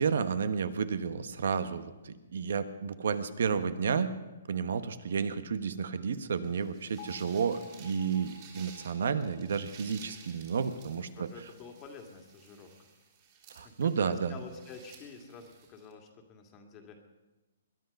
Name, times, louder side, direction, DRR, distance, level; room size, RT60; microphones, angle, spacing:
voice 1, 0.0-4.1 4.5-11.3 13.5-14.4, right 6 dB, 70° right, 12 dB, 1.1 m, -31 dB
sound 1, 6.4-15.9, right 6 dB, 35° right, 3.7 m, -55 dB
Bell, 7.0-11.0, left 10 dB, 45° left, 2.1 m, -53 dB
voice 2, 11.2-12.9 13.6-17.0, left 5 dB, 25° left, 3 dB, 2.0 m, -49 dB
21.5 x 11.0 x 5.4 m, 1.1 s
hypercardioid pair, 145°, 0 cm